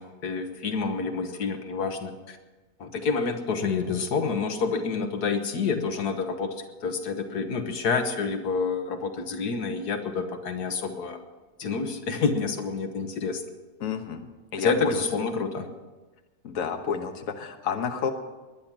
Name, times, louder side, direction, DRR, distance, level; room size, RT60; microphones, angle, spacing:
voice 1, 0.0-2.4 2.8-6.5 6.8-11.2 11.6-13.4 14.6-15.7, left 4 dB, 75° left, 6 dB, 1.7 m, -28 dB
voice 2, 13.8-15.0 16.4-18.1, left 6 dB, 55° left, 5 dB, 1.5 m, -31 dB
20.5 x 10.5 x 6.0 m, 1.2 s
omnidirectional pair, 1.7 m